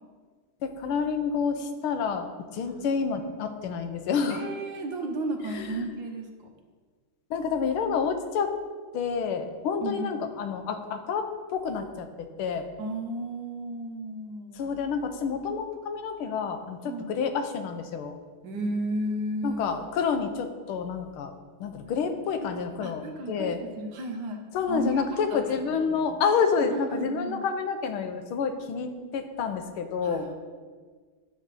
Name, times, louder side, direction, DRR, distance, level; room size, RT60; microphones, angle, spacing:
voice 1, 0.6-2.3 2.5-4.5 5.5-5.9 7.3-8.5 8.9-12.1 12.4-12.7 14.6-18.2 19.4-21.3 21.6-23.6 24.5-30.3, left 6 dB, 85° left, 7 dB, 1.7 m, -29 dB
voice 2, 4.3-6.3 9.8-10.1 12.8-14.7 16.8-17.1 18.4-19.6 22.4-22.5 22.8-24.4 24.7-25.6 25.8-26.0 26.6-27.4 30.0-30.3, right 1 dB, 65° right, 3 dB, 1.7 m, -33 dB
11.5 x 7.3 x 4.1 m, 1.5 s
omnidirectional pair, 2.3 m